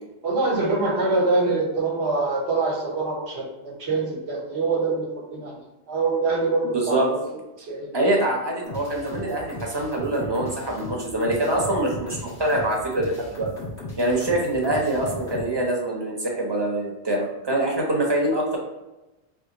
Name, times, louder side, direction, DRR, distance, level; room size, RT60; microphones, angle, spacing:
voice 1, 0.2-5.6 5.9-7.2 7.6-7.9 17.8-17.9, right 3 dB, 75° right, 0 dB, 1.3 m, -24 dB
voice 2, 6.6-7.1 7.9-13.5 14.0-18.6, right 1 dB, 25° right, -1 dB, 0.9 m, -24 dB
sound 1, 8.6-15.5, left 2 dB, 90° left, 1.7 m, -37 dB
3.5 x 3.3 x 4.0 m, 1.0 s
omnidirectional pair, 1.1 m